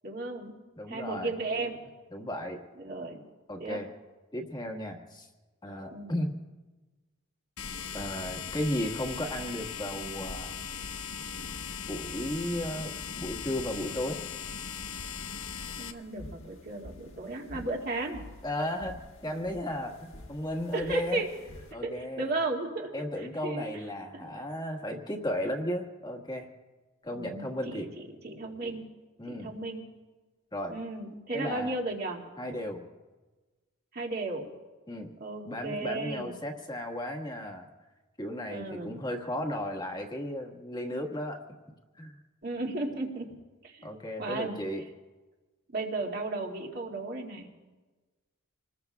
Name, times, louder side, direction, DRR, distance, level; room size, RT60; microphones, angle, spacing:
voice 1, 0.0-0.6 0.9-1.8 2.8-3.2 3.6-3.8 5.9-6.2 15.8-18.2 20.7-21.3 21.8-23.6 27.1-28.9 29.3-29.8 30.7-32.2 33.9-34.5 35.2-36.3 38.5-38.9 42.4-43.3 43.6-43.9 44.2-44.6 45.7-47.5, right 2 dB, 45° right, -1 dB, 2.3 m, -34 dB
voice 2, 0.8-1.3 2.1-2.6 3.5-3.9 4.3-5.3 5.6-6.4 7.9-10.6 11.9-12.9 13.2-14.2 18.4-19.0 19.2-21.2 21.7-22.3 22.9-26.5 27.0-27.9 29.2-29.5 30.5-30.8 31.3-31.8 32.4-32.8 34.9-35.1 35.4-37.7 38.2-41.4 42.0-42.1 43.8-44.8, left 1 dB, 20° left, 2 dB, 1.6 m, -34 dB
sound 1, 7.6-15.9, left 6 dB, 80° left, 0.9 m, -39 dB
sound 2, 11.2-21.7, left 1 dB, 60° left, 1.6 m, -50 dB
27.0 x 20.5 x 2.4 m, 1.2 s
head